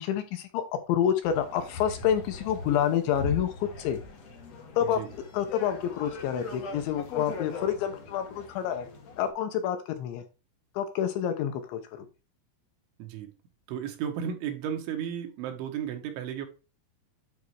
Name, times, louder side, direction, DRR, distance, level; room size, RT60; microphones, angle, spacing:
voice 1, 0.0-4.0 4.8-8.9 9.2-10.2 10.8-12.1, left 9 dB, 80° left, 7 dB, 2.9 m, -28 dB
sound 1, 1.2-9.3, left 3 dB, 55° left, 2.0 m, -40 dB
voice 2, 13.0-13.3 13.7-16.5, right 9 dB, 75° right, 5 dB, 3.6 m, -34 dB
9.7 x 4.0 x 4.6 m, 0.32 s
omnidirectional pair, 5.7 m